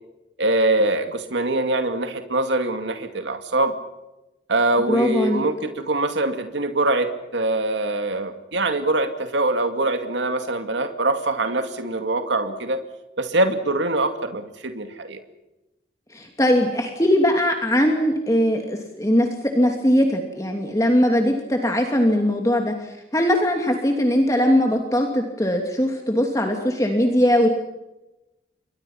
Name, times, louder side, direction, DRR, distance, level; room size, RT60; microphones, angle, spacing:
voice 1, 0.4-3.8 4.5-12.8 13.2-15.2, right 2 dB, 85° right, 7 dB, 2.4 m, -23 dB
voice 2, 4.9-5.4 16.1-19.3 19.5-27.5, equal, 20° left, 3 dB, 2.8 m, -20 dB
29.5 x 24.5 x 5.8 m, 0.98 s
head